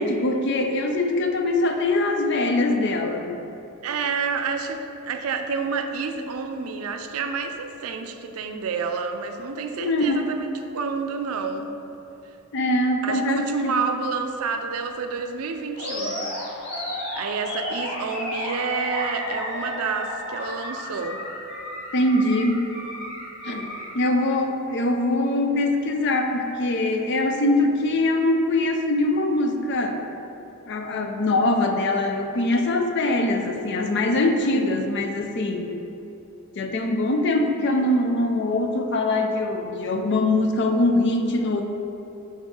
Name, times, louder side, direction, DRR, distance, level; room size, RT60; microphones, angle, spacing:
voice 1, 0.0-3.4 9.8-10.3 12.5-13.7 21.9-22.7 23.4-30.0 30.7-35.7 36.6-41.6, left 2 dB, 55° left, 4 dB, 0.5 m, -23 dB
voice 2, 3.8-10.5 10.7-11.7 13.0-16.3 16.9-21.2, right 5 dB, 85° right, 6 dB, 0.4 m, -29 dB
Animal, 15.8-23.9, left 1 dB, 85° left, 1.4 m, -32 dB
5.2 x 3.6 x 5.4 m, 2.9 s
head